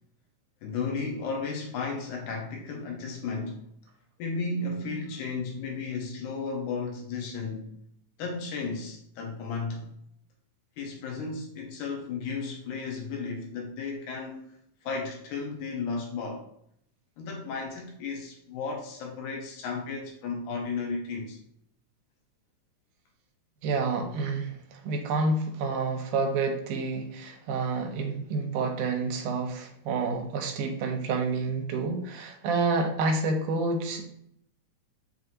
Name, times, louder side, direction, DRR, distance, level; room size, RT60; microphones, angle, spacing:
voice 1, 0.6-3.6 4.2-7.7 8.2-9.9 10.8-14.5 14.8-16.4 17.2-21.4, left 4 dB, 80° left, 2.0 m, -34 dB
voice 2, 23.6-34.0, right 3 dB, 80° right, 2.1 m, -29 dB
5.6 x 2.8 x 2.5 m
omnidirectional pair, 3.6 m